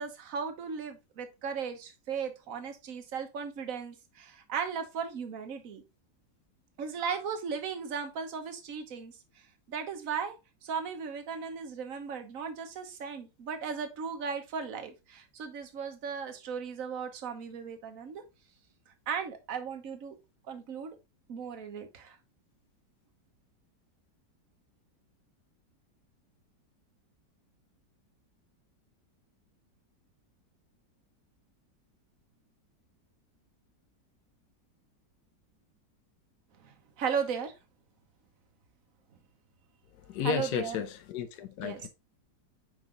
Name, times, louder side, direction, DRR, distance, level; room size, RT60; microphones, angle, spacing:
voice 1, 0.0-5.8 6.8-10.4 10.6-18.2 18.9-20.2 20.5-21.0 21.3-22.2 36.6-37.5 40.2-40.8 41.6-41.8, right 6 dB, 55° right, 1.4 m, -36 dB
voice 2, 40.1-41.9, left 8 dB, 65° left, 1.2 m, -33 dB
5.3 x 4.9 x 3.7 m
omnidirectional pair, 1.9 m